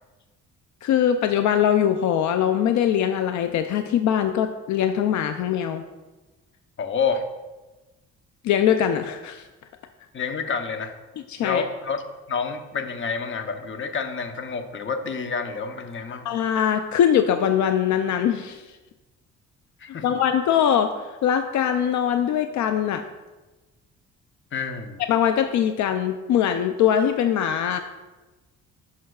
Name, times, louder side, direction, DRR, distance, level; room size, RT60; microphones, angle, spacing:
voice 1, 0.8-5.8 8.4-9.5 11.3-11.6 16.2-18.6 20.0-23.0 25.1-27.8, left 9 dB, 70° left, 7 dB, 0.5 m, -22 dB
voice 2, 6.8-7.2 10.1-10.9 11.4-12.0 12.3-16.3 19.8-20.0 24.5-25.0, left 5 dB, 40° left, 7 dB, 0.8 m, -28 dB
11.0 x 5.7 x 2.3 m, 1.2 s
cardioid pair, 90°, 30 cm